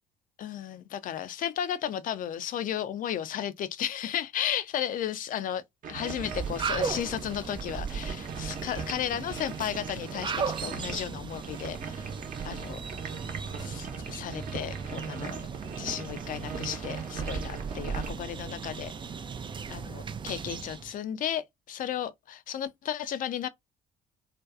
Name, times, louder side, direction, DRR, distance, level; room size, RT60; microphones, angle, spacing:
voice 1, 0.4-5.6 5.9-12.1 12.4-12.8 13.4-15.4 15.8-18.9 19.7-23.5, left 10 dB, 45° left, 0.4 m, -34 dB
sound 1, 5.8-18.1, right 6 dB, 45° right, 0.8 m, -40 dB
sound 2, 6.0-20.9, right 6 dB, 25° right, 0.4 m, -37 dB
2.5 x 2.2 x 2.3 m
hypercardioid pair, 50°, 20 cm